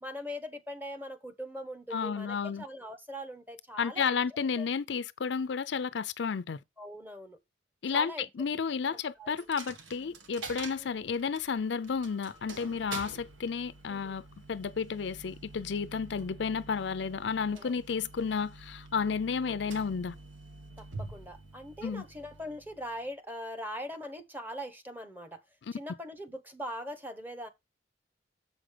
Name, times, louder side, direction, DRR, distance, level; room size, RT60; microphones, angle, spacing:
voice 1, 0.0-4.1 4.6-4.7 6.8-7.4 7.9-8.3 9.2-9.3 10.8-10.9 13.9-14.2 17.5-17.7 20.8-25.4 25.7-27.5, equal, 10° right, 0.9 m, -41 dB
voice 2, 1.9-2.6 3.8-6.6 7.8-20.1 21.8-22.0, left 6 dB, 65° left, 0.5 m, -32 dB
Coin (dropping), 9.4-23.1, right 3 dB, 85° right, 1.4 m, -47 dB
7.3 x 5.1 x 4.9 m
head